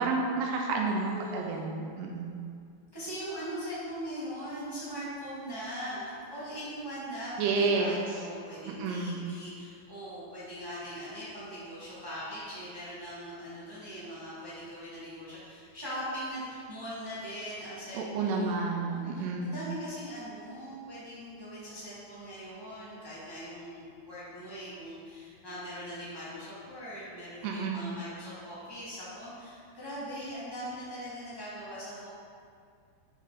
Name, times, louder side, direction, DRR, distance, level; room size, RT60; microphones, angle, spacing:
voice 1, 0.0-2.4 7.4-8.0 8.7-9.2 17.9-19.6 27.4-28.0, right 4 dB, 85° right, 1 dB, 2.8 m, -30 dB
voice 2, 0.9-1.6 2.9-32.1, equal, 15° right, -10 dB, 0.8 m, -41 dB
9.0 x 6.1 x 4.2 m, 2.3 s
omnidirectional pair, 4.7 m